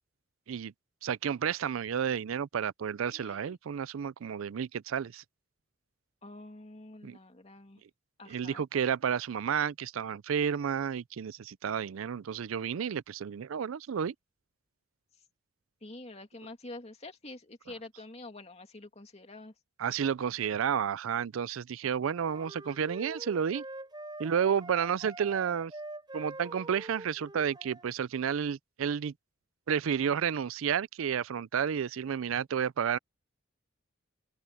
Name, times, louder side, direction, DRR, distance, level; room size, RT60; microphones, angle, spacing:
voice 1, 1.0-5.2 7.0-7.2 8.3-14.1 19.8-23.6 24.2-25.7 26.1-29.1 29.7-33.0, right 7 dB, 80° right, 0.4 m, -31 dB
voice 2, 3.1-3.6 6.2-7.8 8.2-8.6 15.8-19.5, left 2 dB, 30° left, 2.6 m, -47 dB
sound 1, 22.1-27.9, right 2 dB, 20° right, 4.6 m, -45 dB
head